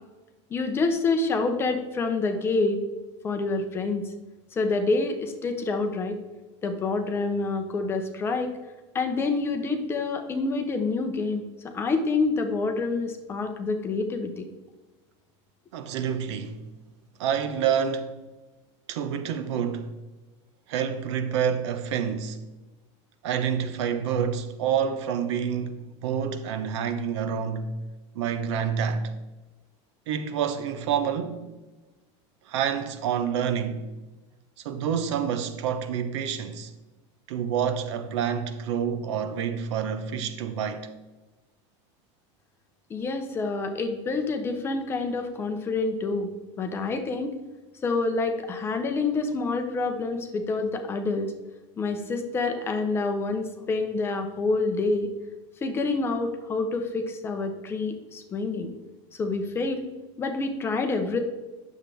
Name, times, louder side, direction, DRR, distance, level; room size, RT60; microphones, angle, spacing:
voice 1, 0.5-2.8 3.2-4.0 4.5-6.2 6.6-8.5 8.9-11.4 11.7-14.5 42.9-46.3 46.6-47.4 47.8-51.3 51.8-55.1 55.6-58.7 59.2-59.9 60.2-61.2, left 3 dB, 15° left, 0.7 m, -27 dB
voice 2, 15.7-16.6 17.2-18.1 18.9-19.9 20.7-22.4 23.2-27.7 28.1-29.1 30.1-31.5 32.5-33.8 34.6-36.7 37.3-40.9, right 7 dB, 70° right, 1.0 m, -28 dB
9.6 x 7.2 x 3.4 m
supercardioid pair, 180°, 15 cm